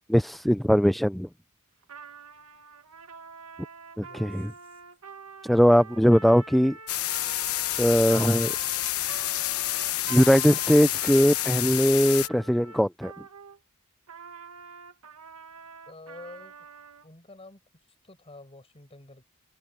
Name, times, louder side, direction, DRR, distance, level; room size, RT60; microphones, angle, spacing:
voice 1, 0.1-1.3 4.0-4.5 5.4-6.8 7.8-8.5 10.1-13.1, equal, ahead, 0.3 m, -20 dB
Trumpet, 1.8-13.6 14.1-17.1, right 5 dB, 75° right, 1.7 m, -46 dB
voice 2, 4.0-4.4 15.9-16.7 17.0-17.6 18.0-19.2, left 2 dB, 25° left, 6.0 m, -48 dB
sound 1, 6.9-12.3, left 14 dB, 70° left, 1.0 m, -29 dB
head